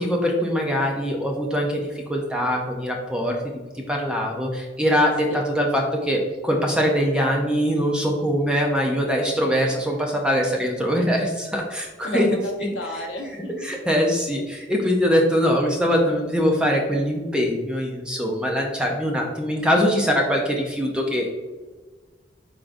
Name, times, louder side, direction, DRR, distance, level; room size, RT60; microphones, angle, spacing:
voice 1, 0.0-3.4 3.9-12.4 13.6-21.3, equal, 5° right, 0 dB, 0.5 m, -22 dB
voice 2, 12.0-13.7, left 1 dB, 85° left, 1 dB, 0.8 m, -31 dB
4.6 x 3.7 x 2.5 m, 1.3 s
head